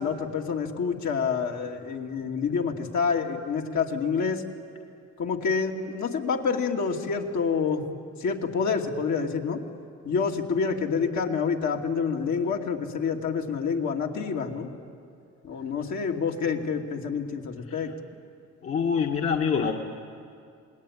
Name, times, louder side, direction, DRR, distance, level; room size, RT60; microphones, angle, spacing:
voice 1, 0.0-4.4 5.2-7.9 8.2-9.6 10.0-14.7 15.4-17.9, left 5 dB, 70° left, 0 dB, 2.7 m, -27 dB
voice 2, 18.6-19.7, left 6 dB, 50° left, 1 dB, 1.7 m, -26 dB
27.5 x 20.5 x 10.0 m, 2.4 s
cardioid pair, 90°, 30 cm